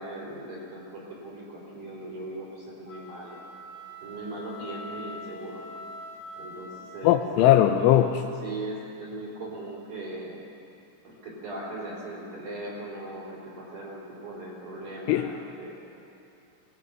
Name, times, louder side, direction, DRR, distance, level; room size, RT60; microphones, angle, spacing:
voice 1, 0.0-3.4 4.0-5.7 6.4-7.9 8.4-10.4 11.0-15.7, right 2 dB, 40° right, -7 dB, 5.1 m, -39 dB
sound 1, 2.8-7.4, left 1 dB, 55° left, 4.0 m, -43 dB
voice 2, 7.0-8.2 15.1-15.3, left 12 dB, 80° left, 6 dB, 3.0 m, -19 dB
25.0 x 18.5 x 6.0 m, 2.7 s
omnidirectional pair, 5.7 m